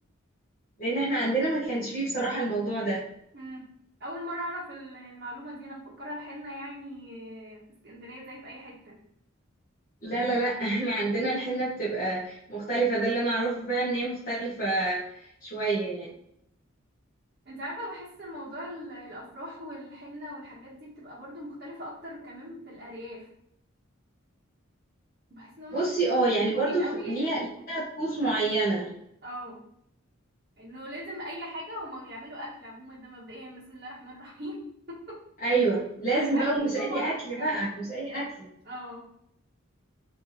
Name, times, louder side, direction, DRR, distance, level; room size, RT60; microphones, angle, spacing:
voice 1, 0.8-3.0 10.0-16.1 25.7-28.9 35.4-38.5, right 2 dB, 40° left, -10 dB, 1.1 m, -28 dB
voice 2, 3.3-3.7 4.0-9.0 17.4-23.3 25.3-27.6 29.2-29.6 30.6-34.6 34.9-35.2 36.1-37.5 38.6-39.1, equal, 50° right, -7 dB, 1.0 m, -40 dB
3.5 x 2.6 x 2.8 m, 0.75 s
head